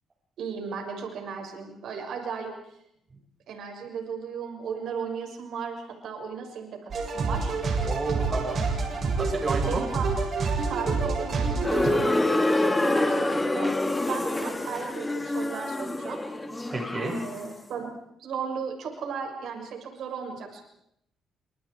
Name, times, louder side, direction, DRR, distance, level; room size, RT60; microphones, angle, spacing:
voice 1, 0.4-2.5 3.5-7.5 9.7-10.1 10.7-12.2 12.5-13.7 14.1-16.2 17.1-17.9 18.2-20.6, right 6 dB, 75° right, 3 dB, 6.4 m, -35 dB
sound 1, 6.9-11.9, right 4 dB, 50° right, 7.7 m, -27 dB
voice 2, 7.8-8.7 9.2-9.9 16.7-17.2, right 3 dB, 35° right, 3 dB, 5.5 m, -31 dB
sound 2, 11.6-17.5, left 2 dB, 15° left, 3.1 m, -26 dB
30.0 x 27.0 x 4.8 m, 0.77 s
cardioid pair, 90°, 0 cm